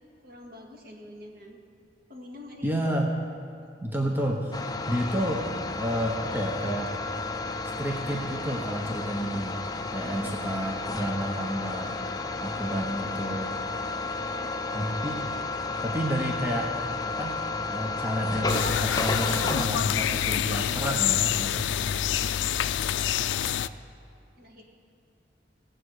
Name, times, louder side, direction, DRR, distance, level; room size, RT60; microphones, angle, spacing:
voice 1, 0.2-1.6 2.1-2.9 3.6-3.7 9.9-10.2 14.0-14.5 22.0-22.1 24.4-24.6, left 1 dB, 55° right, 0 dB, 2.0 m, -47 dB
voice 2, 2.6-3.1 3.8-4.6 4.9-7.0 7.8-9.6 9.9-12.0 12.4-13.6 14.7-15.3 15.8-16.7 17.0-17.4 17.7-21.7, equal, 10° right, 0 dB, 0.9 m, -30 dB
sound 1, 4.5-19.7, left 3 dB, 20° left, 0.6 m, -32 dB
sound 2, 18.5-23.7, left 10 dB, 90° left, 0.4 m, -27 dB
18.0 x 7.7 x 4.8 m, 2.6 s
head